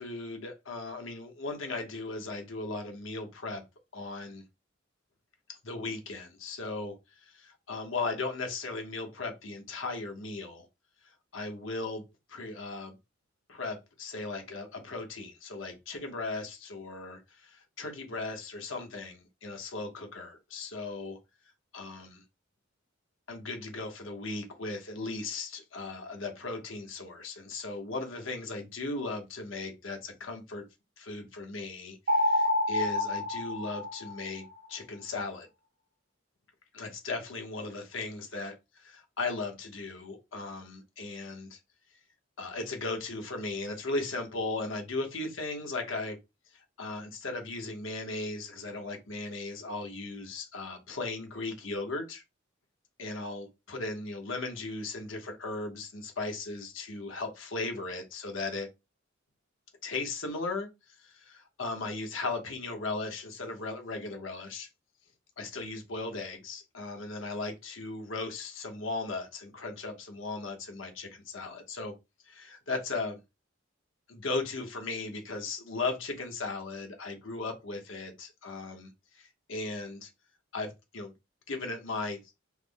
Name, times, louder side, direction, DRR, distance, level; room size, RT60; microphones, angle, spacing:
voice 1, 0.0-3.6 3.9-4.4 5.5-10.7 11.3-12.0 12.3-13.0 13.5-21.2 21.7-22.2 23.3-30.6 31.0-35.5 36.7-41.6 42.4-46.2 46.5-52.2 53.0-58.7 59.8-60.7 61.0-64.7 65.4-71.9 72.3-73.2 74.1-78.9 79.1-80.1 80.5-81.1 81.5-82.2, left 3 dB, 80° left, 1.0 m, -37 dB
sound 1, 32.1-34.5, left 2 dB, 50° right, 0.6 m, -28 dB
3.4 x 2.1 x 3.4 m
head